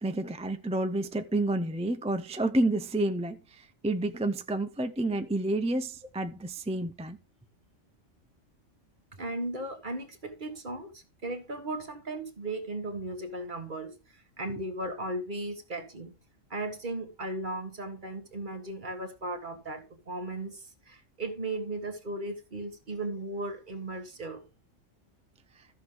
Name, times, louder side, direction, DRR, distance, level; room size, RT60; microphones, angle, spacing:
voice 1, 0.0-7.2, right 2 dB, 10° right, 0.3 m, -29 dB
voice 2, 9.1-16.2 16.5-24.4, right 2 dB, 40° right, 1.6 m, -36 dB
14.0 x 6.3 x 3.8 m
omnidirectional pair, 1.3 m